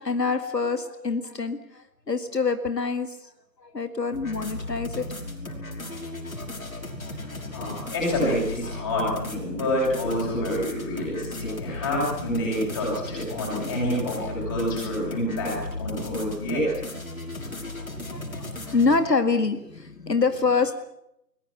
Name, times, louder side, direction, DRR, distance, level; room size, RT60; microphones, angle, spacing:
voice 1, 0.0-3.2 3.6-5.1 5.7-5.9 18.1-20.7, left 4 dB, 75° left, 9 dB, 2.1 m, -26 dB
sound 1, 4.1-19.0, left 2 dB, 55° left, 5.6 m, -36 dB
voice 2, 7.5-16.7, left 1 dB, 10° left, -4 dB, 7.9 m, -27 dB
22.0 x 21.0 x 8.2 m, 0.80 s
figure-of-eight pair, 170°, 50 cm